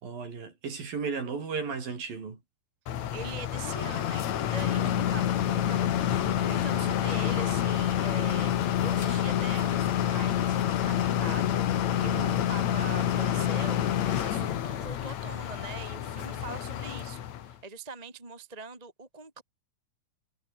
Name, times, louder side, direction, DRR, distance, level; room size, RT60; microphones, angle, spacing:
voice 1, 0.0-2.4 4.8-5.0 5.6-5.8 12.0-12.3, right 5 dB, 50° right, 6.2 m, -35 dB
sound 1, 2.9-17.5, left 10 dB, 65° left, 1.8 m, -28 dB
voice 2, 3.1-4.8 5.1-19.4, right 4 dB, 10° right, 2.6 m, -43 dB
omnidirectional pair, 5.4 m